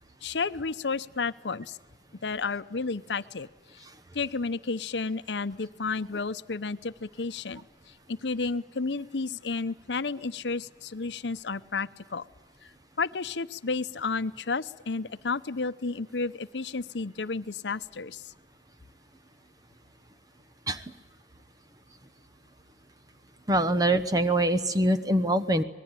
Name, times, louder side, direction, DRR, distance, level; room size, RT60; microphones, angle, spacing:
voice 1, 0.2-1.8 2.2-3.5 3.7-3.8 4.1-7.6 8.1-12.3 12.6-12.7 13.0-18.3, left 4 dB, 80° left, 14 dB, 0.8 m, -32 dB
voice 2, 23.5-25.6, right 1 dB, 20° right, 10 dB, 1.1 m, -24 dB
25.5 x 20.0 x 9.1 m, 1.2 s
head